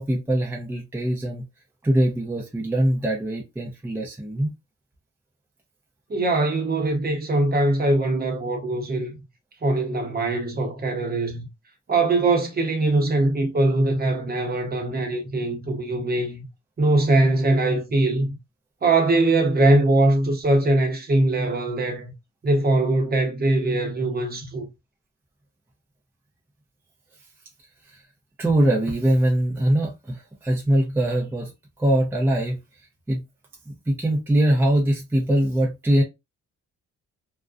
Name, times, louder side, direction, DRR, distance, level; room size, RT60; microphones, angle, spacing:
voice 1, 0.0-1.4 1.8-4.5 27.8-28.0 28.4-31.5 31.8-32.6 33.1-33.2 33.7-36.0, right 1 dB, 5° right, 0.5 m, -22 dB
voice 2, 6.1-9.2 9.6-11.5 11.9-16.4 16.8-18.4 18.8-22.1 22.4-24.7, right 2 dB, 30° right, 0.8 m, -22 dB
2.5 x 2.1 x 2.3 m
cardioid pair, 90°, 30 cm